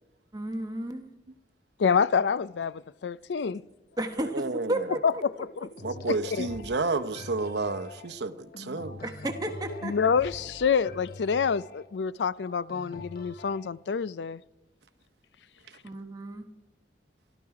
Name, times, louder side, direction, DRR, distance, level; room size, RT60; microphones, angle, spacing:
voice 1, 0.3-1.1 4.0-5.2 9.0-10.0 15.8-16.5, right 1 dB, 20° right, 1.1 m, -33 dB
voice 2, 1.8-3.6 5.0-5.3 5.6-5.7 6.1-6.5 9.8-14.4, left 6 dB, 80° left, 0.4 m, -27 dB
voice 3, 4.2-5.0 5.8-9.0 15.7-15.8, right 3 dB, 70° right, 0.8 m, -31 dB
sound 1, 5.8-13.7, left 2 dB, 60° left, 1.0 m, -44 dB
23.5 x 13.0 x 4.8 m
head